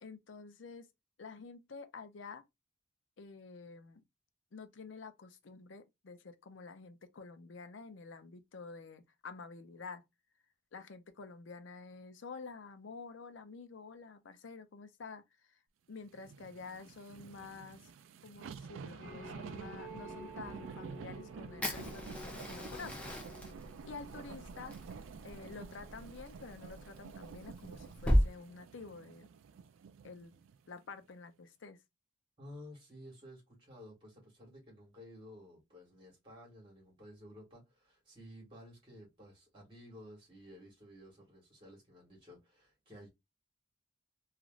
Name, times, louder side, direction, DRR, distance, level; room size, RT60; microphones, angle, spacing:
voice 1, 0.0-0.9 1.2-2.4 3.2-4.0 4.5-10.0 10.7-15.6 15.9-17.8 18.2-23.1 23.9-24.7 25.2-29.3 30.0-30.3 30.7-31.8, left 4 dB, 65° left, 0.5 m, -49 dB
sound 1, 16.1-30.6 31.0-31.1, right 6 dB, 75° right, 0.3 m, -50 dB
sound 2, 19.0-26.5, equal, 40° left, 1.3 m, -52 dB
Fire, 21.6-28.3, equal, 5° left, 0.6 m, -36 dB
voice 2, 32.4-43.1, equal, 25° right, 1.6 m, -54 dB
3.0 x 2.4 x 2.4 m
head